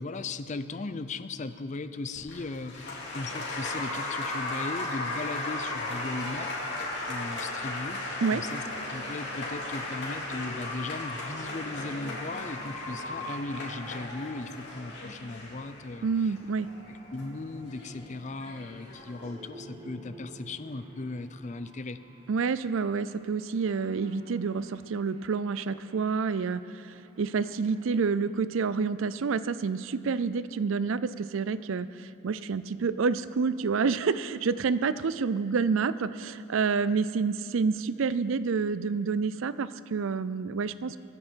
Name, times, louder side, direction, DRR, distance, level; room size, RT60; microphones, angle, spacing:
voice 1, 0.0-6.5 7.1-8.0 8.3-16.3 16.9-22.0, left 3 dB, 35° left, 11 dB, 0.5 m, -37 dB
Applause, 2.1-19.3, left 2 dB, 55° left, 3.0 m, -36 dB
sound 1, 8.6-28.5, right 1 dB, 25° right, 1.6 m, -53 dB
voice 2, 16.0-16.7 22.3-41.0, right 5 dB, 70° right, 15 dB, 0.4 m, -28 dB
21.5 x 9.8 x 4.5 m, 2.7 s
head